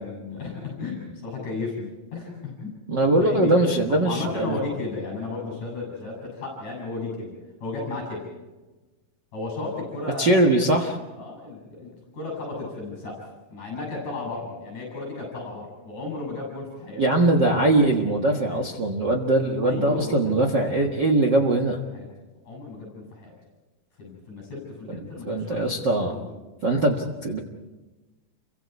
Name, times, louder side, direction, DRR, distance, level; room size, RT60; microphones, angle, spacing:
voice 1, 0.0-2.7 3.0-7.3 7.6-8.2 9.3-10.4 11.2-13.2 13.5-17.0 18.5-18.6 19.6-20.9 21.2-21.4 21.9-22.1 22.4-23.3 24.0-26.4, left 3 dB, 50° left, 0 dB, 9.1 m, -34 dB
voice 2, 2.9-4.6 10.2-11.0 17.0-21.8 25.3-26.1 26.6-27.4, right 2 dB, 60° right, 2 dB, 1.1 m, -21 dB
29.5 x 24.5 x 4.8 m, 1.2 s
omnidirectional pair, 4.7 m